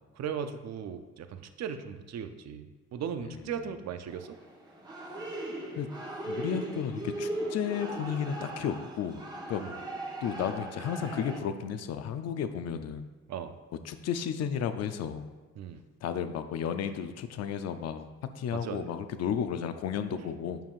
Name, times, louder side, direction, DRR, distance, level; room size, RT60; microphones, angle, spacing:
voice 1, 0.2-4.4 9.6-9.8 13.3-13.6 15.6-15.8 18.5-18.9 20.2-20.3, right 7 dB, 60° right, 9 dB, 0.6 m, -37 dB
sound 1, 4.1-11.4, right 1 dB, 15° right, 1.1 m, -38 dB
voice 2, 6.3-9.2 9.5-9.6 10.2-13.1 13.9-15.3 16.0-20.6, left 8 dB, 60° left, 10 dB, 0.5 m, -33 dB
9.0 x 5.5 x 2.4 m, 1.3 s
cardioid pair, 90°, 30 cm